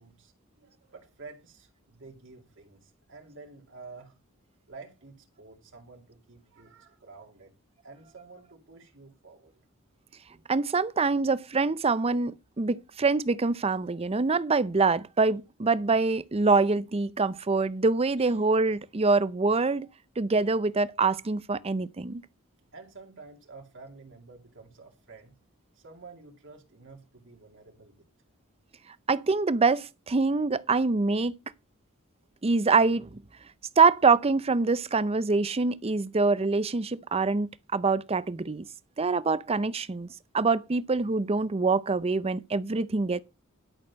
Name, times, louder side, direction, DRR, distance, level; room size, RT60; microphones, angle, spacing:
voice 1, 0.0-4.2 4.7-7.5 7.8-9.6 18.2-18.4 22.7-25.3 25.7-28.1, right 4 dB, 65° right, 2.5 m, -50 dB
voice 2, 10.5-19.9 20.2-22.2 29.1-31.3 32.4-33.1 33.8-38.6 39.0-40.1 40.3-43.2, right 4 dB, 30° right, 0.6 m, -25 dB
11.5 x 6.5 x 5.3 m
head